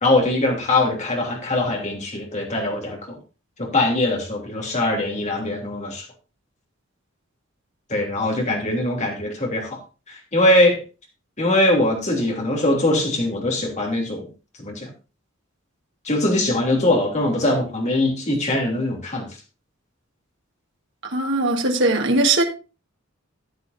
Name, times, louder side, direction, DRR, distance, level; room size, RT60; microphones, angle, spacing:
voice 1, 0.0-3.2 3.6-6.0 7.9-9.8 10.1-10.8 11.4-14.3 14.6-14.9 16.0-19.3, left 1 dB, 35° left, 3.2 m, -21 dB
voice 2, 21.0-22.4, right 2 dB, 65° right, 1.6 m, -20 dB
14.5 x 8.6 x 2.7 m
head